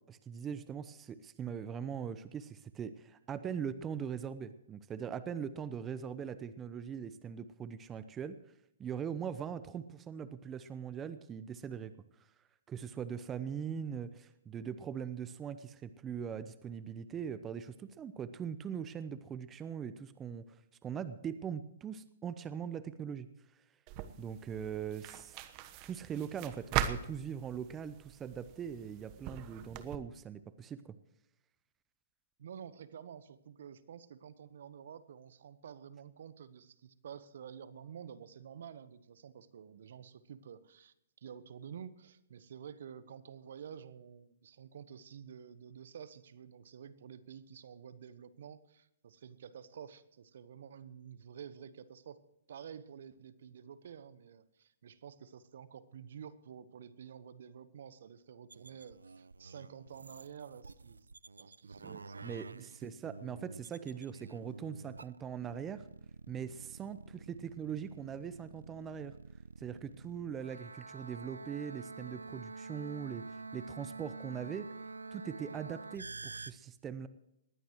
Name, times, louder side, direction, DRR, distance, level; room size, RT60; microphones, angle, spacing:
voice 1, 0.1-8.4 8.8-11.9 12.7-23.3 24.2-25.4 25.8-31.0 61.8-65.8 66.3-69.1 69.6-74.7 75.1-77.1, right 7 dB, 20° right, 13 dB, 0.8 m, -41 dB
sound 1, 23.9-30.0, right 11 dB, 35° right, 1.2 m, -40 dB
voice 2, 32.4-52.2 52.5-61.1 61.4-63.0, right 8 dB, 65° right, 15 dB, 1.1 m, -50 dB
sound 2, 58.5-76.5, right 3 dB, 85° right, 0.5 m, -49 dB
20.0 x 16.0 x 3.1 m, 0.81 s
hypercardioid pair, 125°, 0 cm